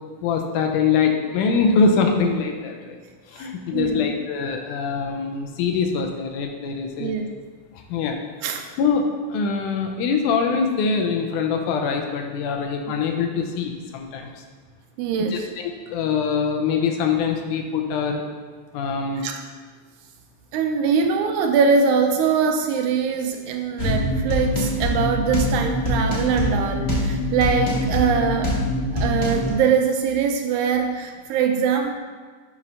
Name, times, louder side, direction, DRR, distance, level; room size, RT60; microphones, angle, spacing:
voice 1, 0.2-3.0 3.3-7.1 7.7-8.2 8.8-14.3 15.3-18.2 18.7-19.3, left 5 dB, 80° left, 3 dB, 2.1 m, -23 dB
voice 2, 3.7-4.0 7.0-7.3 8.4-8.6 15.0-15.4 19.2-19.4 20.5-28.5 28.9-32.0, right 6 dB, 80° right, 4 dB, 1.9 m, -22 dB
sound 1, 23.8-29.5, left 1 dB, 65° left, 0.6 m, -24 dB
7.3 x 3.2 x 5.5 m, 1.5 s
omnidirectional pair, 3.7 m